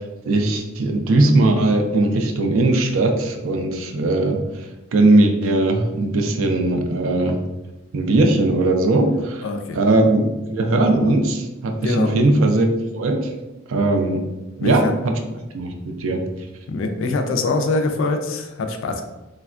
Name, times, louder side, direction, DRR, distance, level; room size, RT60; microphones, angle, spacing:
voice 1, 0.3-4.4 4.9-7.4 7.9-9.4 9.7-12.7 12.9-13.3 13.7-14.2 14.6-15.2 15.5-16.2, right 2 dB, 80° right, 4 dB, 0.4 m, -19 dB
voice 2, 9.4-9.8 11.8-12.1 14.6-14.9 16.7-19.0, left 3 dB, 65° left, 5 dB, 0.4 m, -23 dB
3.3 x 2.1 x 2.4 m, 1.0 s
head